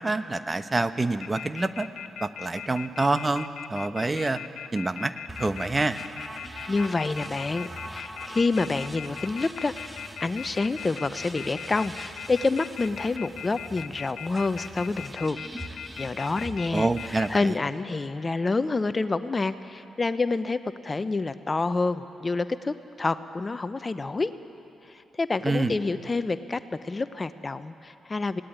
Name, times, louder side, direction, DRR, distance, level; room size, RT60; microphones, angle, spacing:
voice 1, 0.0-1.9 2.2-4.4 4.7-5.1 5.4-6.0 16.7-17.6 25.4-25.8, right 2 dB, 25° right, 11 dB, 1.1 m, -27 dB
sound 1, 1.2-17.4, left 10 dB, 75° left, 0.5 m, -39 dB
sound 2, 5.3-17.4, right 1 dB, 10° right, 1.7 m, -43 dB
voice 2, 6.7-9.7 10.2-15.4 15.6-16.9 17.3-24.3 24.9-28.4, left 3 dB, 35° left, 12 dB, 0.8 m, -28 dB
19.5 x 17.0 x 9.4 m, 2.8 s
hypercardioid pair, 40°, 0 cm